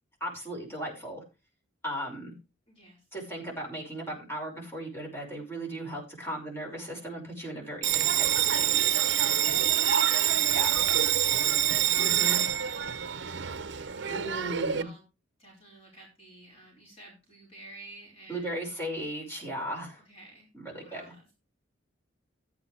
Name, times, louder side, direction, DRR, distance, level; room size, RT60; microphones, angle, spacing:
voice 1, 0.2-1.2 1.8-2.3 3.1-9.0 10.5-10.8 12.0-12.4 14.1-14.9 18.3-20.0 20.5-21.0, right 1 dB, 10° left, -2 dB, 5.7 m, -37 dB
voice 2, 2.7-3.0 9.7-14.1 14.7-15.0 15.4-18.8 20.0-20.5 20.8-21.3, right 1 dB, 30° left, -2 dB, 5.0 m, -52 dB
Bell, 7.8-14.8, right 10 dB, 60° right, 0.8 m, -26 dB
14.0 x 9.8 x 3.3 m, 0.29 s
head